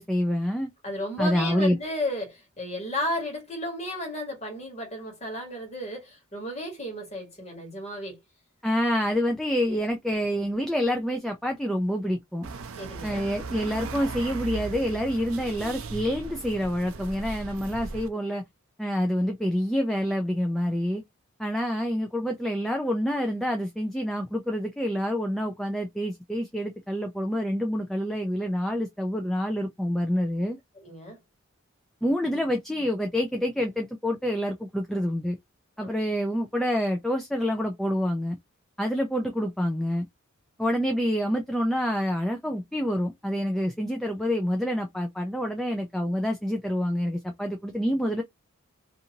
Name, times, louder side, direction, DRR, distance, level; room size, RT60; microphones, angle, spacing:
voice 1, 0.0-0.7 1.2-1.8 8.6-12.5 13.0-18.4 18.8-21.0 21.4-30.6 32.0-35.4 35.8-38.4 38.8-40.1 40.6-48.2, equal, ahead, 0.3 m, -27 dB
voice 2, 0.8-8.2 12.8-13.2 30.8-31.2 35.8-35.9, left 1 dB, 30° left, 1.4 m, -33 dB
sound 1, 12.4-18.1, right 4 dB, 80° right, 0.5 m, -37 dB
2.6 x 2.6 x 2.7 m
head